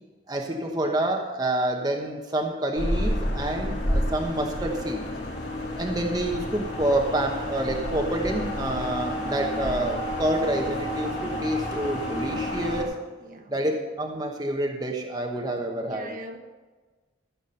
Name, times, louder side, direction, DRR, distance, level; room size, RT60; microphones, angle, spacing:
voice 1, 0.3-5.0 5.8-13.0 13.5-16.1, right 1 dB, 20° right, 1 dB, 1.0 m, -28 dB
sound 1, 2.7-12.8, equal, 60° left, 2.7 m, -30 dB
voice 2, 13.2-13.5 15.9-16.4, right 1 dB, 45° right, 4 dB, 1.1 m, -40 dB
14.5 x 7.1 x 5.7 m, 1.3 s
head